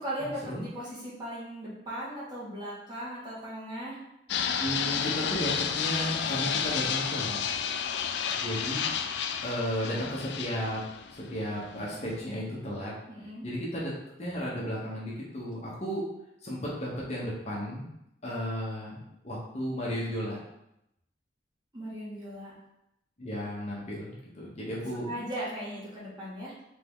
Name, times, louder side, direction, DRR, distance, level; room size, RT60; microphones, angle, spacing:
voice 1, 0.0-4.0 13.1-13.5 21.7-22.5 25.0-26.7, right 1 dB, 25° right, -8 dB, 1.7 m, -38 dB
Fixed-wing aircraft airplane, 4.3-12.2, left 7 dB, 70° left, 0.3 m, -31 dB
voice 2, 4.5-7.4 8.4-8.9 9.4-10.8 11.1-12.9 13.4-13.9 14.2-16.0 16.4-17.8 18.2-20.4 23.2-25.1, equal, 40° left, -5 dB, 1.1 m, -34 dB
3.7 x 3.5 x 3.6 m, 0.84 s
head